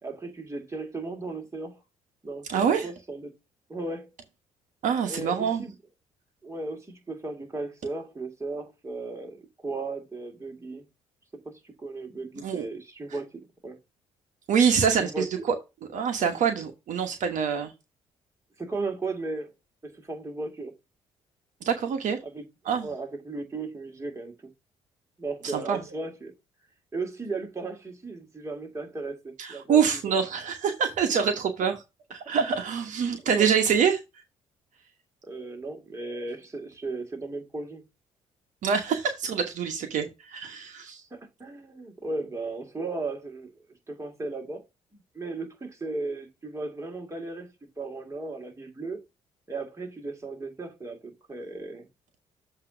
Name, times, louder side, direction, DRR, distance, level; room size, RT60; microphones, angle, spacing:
voice 1, 0.0-1.8 2.2-3.3 3.7-4.1 5.1-5.8 6.4-10.8 11.4-13.8 15.0-15.5 18.6-19.5 19.8-20.7 22.2-22.4 22.8-24.3 25.2-26.3 26.9-30.2 33.3-33.5 35.2-37.8 41.1-43.5 43.9-44.6 44.9-49.0 49.5-51.9, right 3 dB, 20° right, 2.5 m, -36 dB
voice 2, 2.5-2.9 4.8-5.6 12.4-12.6 14.5-15.5 15.9-17.7 21.6-22.2 22.7-22.9 25.5-25.8 29.4-31.8 32.1-34.0 38.6-41.0, right 7 dB, 65° right, 1.2 m, -25 dB
7.5 x 3.0 x 6.0 m
hypercardioid pair, 55°, 14 cm